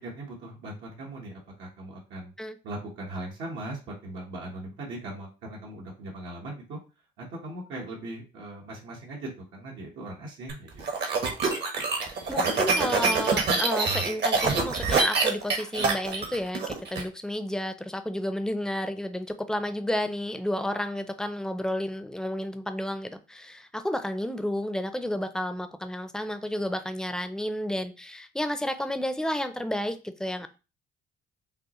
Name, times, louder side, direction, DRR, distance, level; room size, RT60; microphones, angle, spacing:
voice 1, 0.0-2.3 2.6-6.8 7.2-10.8, right 1 dB, 85° right, 1.2 m, -39 dB
sound 1, 10.5-17.0, right 4 dB, 60° right, 1.0 m, -25 dB
voice 2, 12.3-30.5, left 1 dB, 5° left, 0.4 m, -31 dB
5.4 x 2.0 x 2.9 m
cardioid pair, 90°, 20 cm